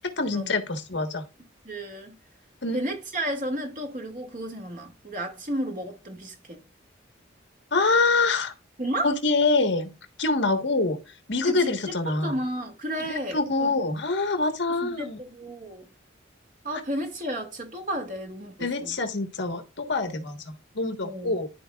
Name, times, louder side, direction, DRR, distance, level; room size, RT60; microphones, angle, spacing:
voice 1, 0.2-1.2 2.6-2.8 7.7-8.5 9.0-9.9 10.2-11.0 11.3-12.4 13.1-15.2 18.6-21.5, left 3 dB, 60° left, 1.4 m, -25 dB
voice 2, 1.6-2.2 2.7-6.6 8.8-9.1 11.4-13.8 14.7-15.9 16.6-18.9 21.0-21.4, right 1 dB, 40° right, 2.2 m, -33 dB
13.5 x 4.6 x 2.4 m
head